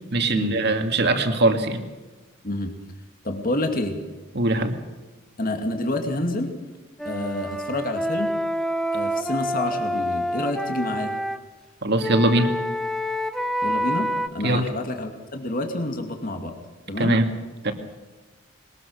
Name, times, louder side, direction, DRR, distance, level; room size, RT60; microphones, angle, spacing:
voice 1, 0.1-1.8 4.3-4.7 11.8-12.5 14.4-14.7 17.0-17.3 17.6-17.7, right 2 dB, 55° right, 6 dB, 2.2 m, -21 dB
voice 2, 3.2-4.0 5.4-6.7 7.0-8.4 8.9-11.1 13.6-16.6 16.9-17.2, left 1 dB, 45° left, 4 dB, 2.4 m, -28 dB
Wind instrument woodwind instrument, 7.0-11.4 12.0-14.3, equal, ahead, 0.8 m, -27 dB
21.5 x 20.0 x 6.5 m, 1.2 s
head